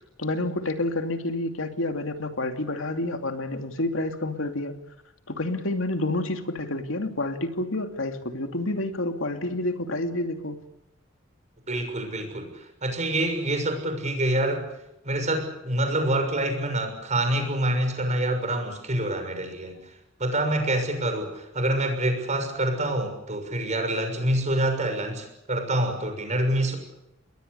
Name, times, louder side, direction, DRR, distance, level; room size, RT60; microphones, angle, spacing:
voice 1, 0.2-4.7 5.3-10.6, left 2 dB, 85° left, 6 dB, 2.6 m, -29 dB
voice 2, 11.7-14.7 15.0-19.8 20.2-26.8, right 1 dB, 35° right, 6 dB, 6.4 m, -26 dB
29.0 x 21.5 x 6.9 m, 0.89 s
head